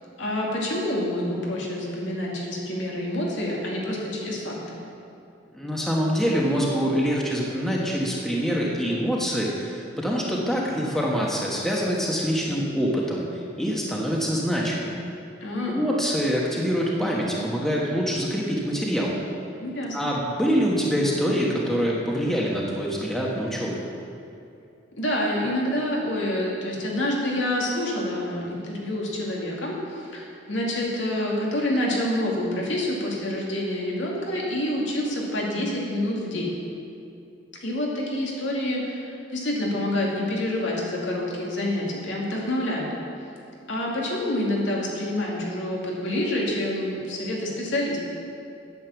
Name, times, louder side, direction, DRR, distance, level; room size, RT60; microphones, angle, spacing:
voice 1, 0.2-4.8 15.4-15.8 19.6-20.1 25.0-36.5 37.6-42.9 43.7-48.0, left 1 dB, 75° left, -3 dB, 2.4 m, -27 dB
voice 2, 5.5-14.9 15.7-19.2 19.9-23.8, equal, ahead, -3 dB, 1.3 m, -25 dB
9.5 x 8.7 x 7.1 m, 2.6 s
head